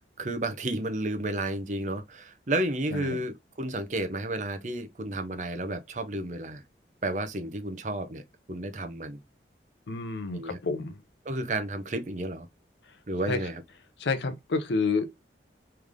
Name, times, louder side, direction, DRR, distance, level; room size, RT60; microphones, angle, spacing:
voice 1, 0.2-6.6 7.0-8.2 8.5-9.2 10.3-10.6 11.2-12.5 13.1-13.6, right 1 dB, 45° right, 0.7 m, -32 dB
voice 2, 9.9-11.0 13.3-13.4 14.0-15.1, left 4 dB, 80° left, 0.6 m, -29 dB
3.5 x 3.2 x 3.5 m
head